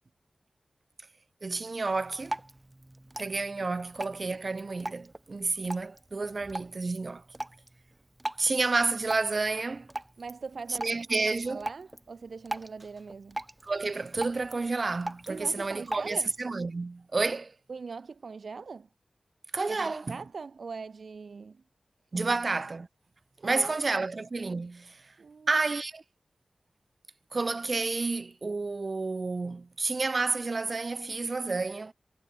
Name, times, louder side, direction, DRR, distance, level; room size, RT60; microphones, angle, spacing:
voice 1, 1.4-2.4 3.2-7.2 8.4-9.9 10.8-11.6 13.6-17.5 19.5-20.2 22.1-22.9 23.4-25.1 25.5-26.0 27.3-31.9, right 3 dB, 50° right, 2.6 m, -30 dB
Drip, 1.9-16.4, right 1 dB, 20° right, 1.8 m, -42 dB
voice 2, 10.2-11.0 11.2-13.4 15.3-16.3 17.7-18.9 19.7-21.6 22.1-22.3 23.4-24.1 25.2-25.5, right 4 dB, 75° right, 1.3 m, -41 dB
wide cardioid pair, 90°, 0 cm